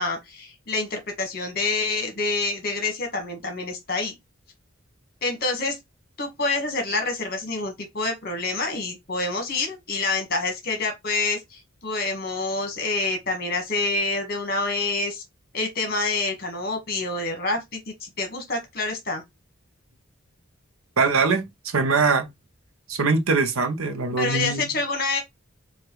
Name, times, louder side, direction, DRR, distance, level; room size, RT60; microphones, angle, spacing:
voice 1, 0.0-4.2 5.2-5.8 6.2-15.2 15.5-19.2 24.2-25.2, left 3 dB, 45° left, 1.3 m, -27 dB
voice 2, 21.0-21.4 21.7-22.3 22.9-24.7, right 4 dB, 75° right, 0.8 m, -22 dB
4.8 x 2.4 x 3.0 m
head